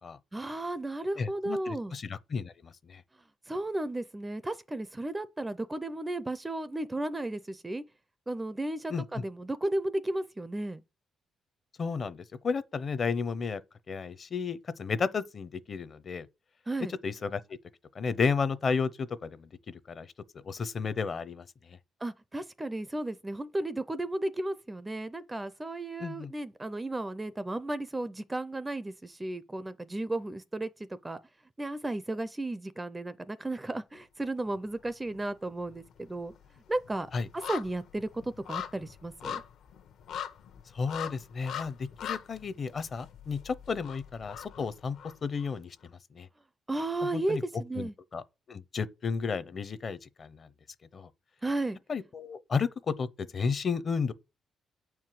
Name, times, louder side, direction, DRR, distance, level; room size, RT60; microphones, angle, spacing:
voice 1, 0.3-2.0 3.5-7.8 8.3-10.8 16.7-16.9 22.0-31.2 31.6-36.3 36.7-37.1 37.3-39.4 46.7-47.9 51.4-51.8, right 2 dB, 10° right, 0.4 m, -34 dB
voice 2, 1.1-3.0 8.9-9.2 11.8-13.6 13.9-16.3 16.9-17.6 17.9-21.8 26.0-26.3 37.1-37.3 40.7-45.0 45.2-46.3 47.0-47.4 47.7-48.2 48.5-50.5 50.9-51.1 51.9-54.1, left 5 dB, 35° left, 0.6 m, -33 dB
sound 1, 34.5-35.2 35.5-45.5 45.8-45.9, left 9 dB, 70° left, 1.0 m, -42 dB
9.3 x 4.7 x 7.5 m
cardioid pair, 175°, 0 cm